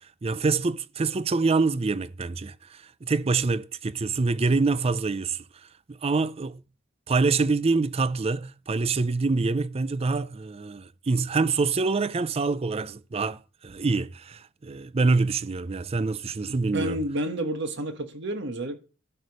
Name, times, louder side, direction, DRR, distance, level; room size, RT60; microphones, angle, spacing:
voice 1, 0.2-5.4 5.9-6.6 7.1-17.0, right 3 dB, 30° right, 0.4 m, -26 dB
voice 2, 16.5-18.8, right 1 dB, 60° right, 1.4 m, -30 dB
12.0 x 4.8 x 5.3 m
head